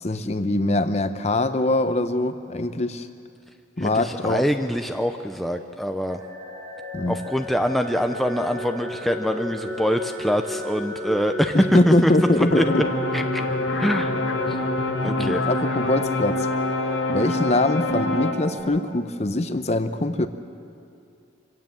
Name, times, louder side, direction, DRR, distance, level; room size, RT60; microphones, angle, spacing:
voice 1, 0.0-3.1 3.8-4.5 6.9-7.2 11.5-12.8 15.1-16.5 17.1-20.3, left 2 dB, 35° left, 10 dB, 0.8 m, -23 dB
voice 2, 3.8-6.2 7.1-12.1 12.4-12.6 13.1-13.4 13.8-14.1 14.5-14.6 15.0-15.5, equal, ahead, 5 dB, 0.6 m, -24 dB
sound 1, 6.1-18.6, left 1 dB, 55° right, 6.3 m, -34 dB
sound 2, 12.5-18.3, left 2 dB, 75° left, 1.5 m, -26 dB
25.0 x 16.5 x 7.7 m, 2.5 s
head